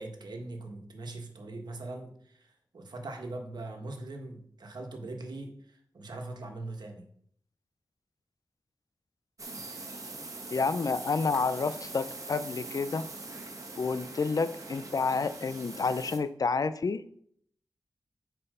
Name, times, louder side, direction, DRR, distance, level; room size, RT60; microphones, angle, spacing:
voice 1, 0.0-7.0 9.5-9.6, right 2 dB, 70° right, 3 dB, 1.6 m, -41 dB
sound 1, 9.4-16.2, right 3 dB, 50° right, 1.5 m, -42 dB
voice 2, 10.5-13.1 13.8-17.0, left 4 dB, 55° left, 13 dB, 0.5 m, -29 dB
8.7 x 4.4 x 5.5 m, 0.66 s
wide cardioid pair, 100°, 7 cm